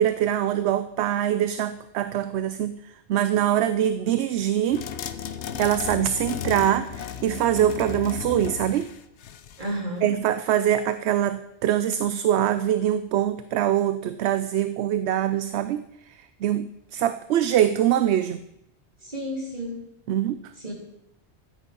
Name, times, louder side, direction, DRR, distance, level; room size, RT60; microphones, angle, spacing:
voice 1, 0.0-4.8 5.6-8.9 10.0-18.4 20.1-20.4, right 11 dB, 75° right, 12 dB, 0.8 m, -24 dB
sound 1, 4.7-9.8, left 8 dB, 80° left, 1.0 m, -34 dB
voice 2, 9.6-10.1 19.0-19.9 20.6-20.7, equal, 45° right, -4 dB, 3.8 m, -32 dB
13.0 x 8.5 x 5.3 m, 0.81 s
omnidirectional pair, 1.1 m